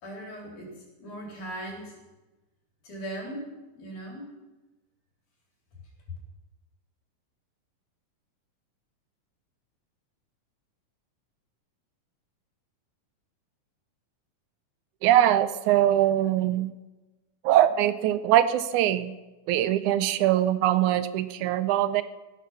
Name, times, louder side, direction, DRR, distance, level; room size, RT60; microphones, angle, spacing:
voice 1, 0.0-1.9 2.8-4.3, right 1 dB, 65° left, -2 dB, 5.4 m, -39 dB
voice 2, 15.0-16.7 17.4-19.1 19.5-22.0, right 12 dB, 80° right, 13 dB, 2.0 m, -22 dB
16.0 x 13.0 x 5.9 m, 1.1 s
omnidirectional pair, 3.7 m